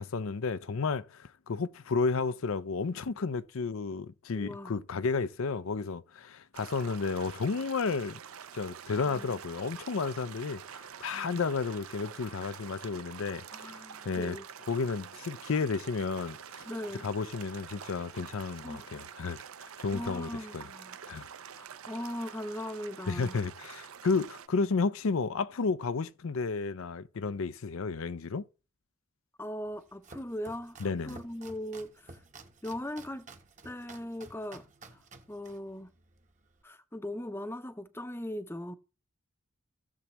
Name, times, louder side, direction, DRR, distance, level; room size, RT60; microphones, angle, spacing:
voice 1, 0.0-8.2 8.5-13.7 14.1-14.4 14.7-16.7 17.0-20.6 21.1-21.3 23.1-28.4 30.8-31.2, left 4 dB, 75° left, 0.5 m, -32 dB
voice 2, 4.3-4.8 9.0-9.3 11.1-11.4 12.6-12.7 13.5-14.5 16.7-17.1 18.6-18.9 19.9-21.0 21.5-23.4 29.4-32.1 32.6-33.3 33.6-34.7 34.9-35.0 35.3-35.9 36.6-38.8, left 1 dB, 10° left, 0.6 m, -39 dB
sound 1, 6.5-24.5, right 8 dB, 80° right, 0.6 m, -47 dB
Domestic sounds home sounds, 29.7-36.6, right 3 dB, 35° right, 1.0 m, -53 dB
15.5 x 7.2 x 3.0 m
head